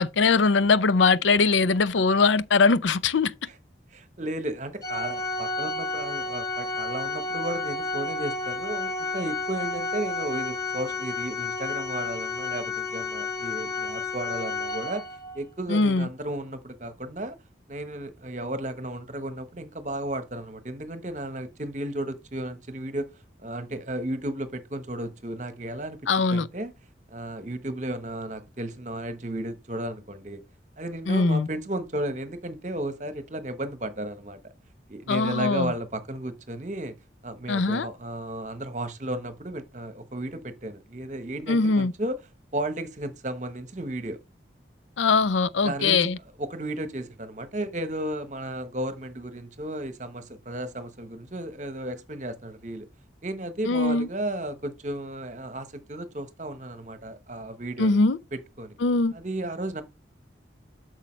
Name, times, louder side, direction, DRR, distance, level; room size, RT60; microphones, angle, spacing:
voice 1, 0.0-3.3 15.7-16.1 26.1-26.5 31.1-31.5 35.1-35.7 37.5-37.9 41.5-41.9 45.0-46.2 53.7-54.1 57.8-58.2 58.8-59.1, left 4 dB, 85° left, 0.5 m, -21 dB
voice 2, 3.9-15.0 15.3-17.4 17.7-23.1 23.4-26.0 26.3-26.7 27.1-30.4 30.8-34.4 34.9-36.9 37.2-42.2 42.5-44.2 45.6-46.1 46.4-52.9 53.2-58.0 58.3-58.8 59.1-59.8, right 1 dB, 40° right, 1.1 m, -34 dB
Organ, 4.8-15.4, left 3 dB, 20° left, 0.8 m, -31 dB
8.4 x 6.5 x 3.2 m
head